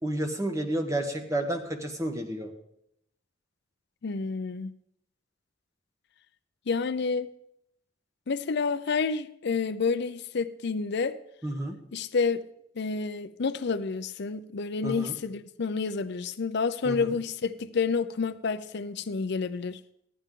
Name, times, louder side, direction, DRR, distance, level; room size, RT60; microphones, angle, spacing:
voice 1, 0.0-2.5 11.4-11.8 14.8-15.1 16.8-17.2, right 1 dB, 15° right, 1.2 m, -31 dB
voice 2, 4.0-4.7 6.7-7.3 8.3-11.2 11.9-12.4 12.8-19.8, left 4 dB, 60° left, 0.5 m, -29 dB
15.0 x 10.5 x 3.7 m
head